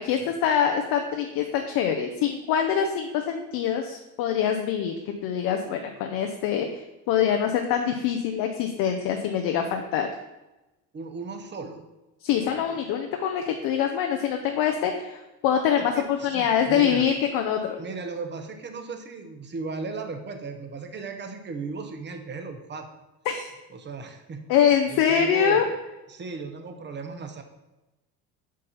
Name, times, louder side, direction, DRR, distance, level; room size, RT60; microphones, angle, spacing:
voice 1, 0.0-4.9 5.2-10.1 12.2-17.8 23.3-23.5 24.5-25.7, left 8 dB, 65° left, 4 dB, 0.7 m, -24 dB
voice 2, 10.9-11.8 12.3-12.7 15.8-17.1 17.8-22.9 23.7-24.4 24.9-25.7 26.1-27.4, right 4 dB, 30° right, 6 dB, 0.9 m, -36 dB
7.4 x 2.7 x 5.4 m, 1.0 s
supercardioid pair, 95°, 36 cm